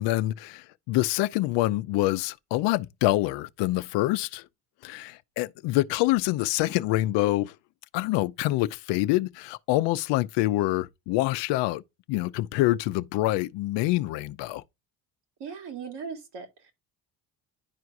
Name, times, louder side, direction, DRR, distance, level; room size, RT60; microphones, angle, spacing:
voice 1, 0.0-4.4 4.8-7.5 7.9-11.8 12.1-14.6, left 17 dB, 85° left, 0.6 m, -26 dB
voice 2, 15.4-16.7, right 6 dB, 70° right, 2.4 m, -38 dB
11.0 x 4.7 x 2.5 m
supercardioid pair, 80°, 42 cm